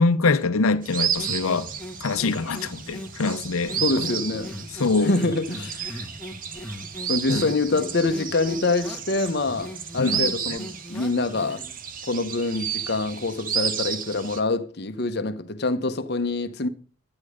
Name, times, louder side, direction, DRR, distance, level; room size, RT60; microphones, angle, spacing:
voice 1, 0.0-1.7 2.0-4.1 4.8-5.1 7.3-7.5 10.0-10.2, left 3 dB, 85° left, 0.7 m, -24 dB
sound 1, 0.8-14.4, right 8 dB, 40° right, 0.8 m, -32 dB
sound 2, 1.2-11.8, left 1 dB, 5° left, 1.5 m, -39 dB
voice 2, 3.8-4.5 5.0-5.8 7.1-11.6 12.1-16.7, left 3 dB, 50° left, 0.9 m, -25 dB
12.0 x 9.7 x 5.0 m
head